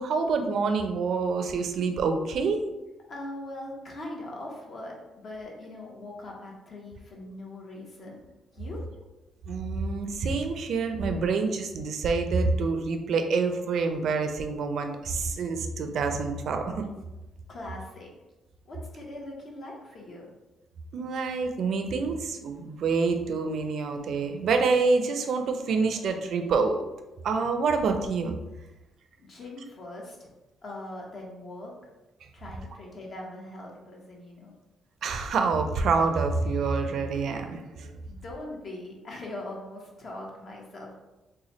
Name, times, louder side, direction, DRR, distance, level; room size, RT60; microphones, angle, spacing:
voice 1, 0.0-2.6 9.5-16.8 20.9-26.8 27.2-28.3 35.0-37.9, right 4 dB, 65° right, 6 dB, 0.4 m, -27 dB
voice 2, 3.1-8.2 8.5-8.8 17.5-18.1 18.6-20.3 29.2-30.3 30.6-31.7 32.3-34.5 38.1-40.9, left 1 dB, 50° left, -2 dB, 1.0 m, -41 dB
3.1 x 2.2 x 3.9 m, 1.0 s
cardioid pair, 90°, 0 cm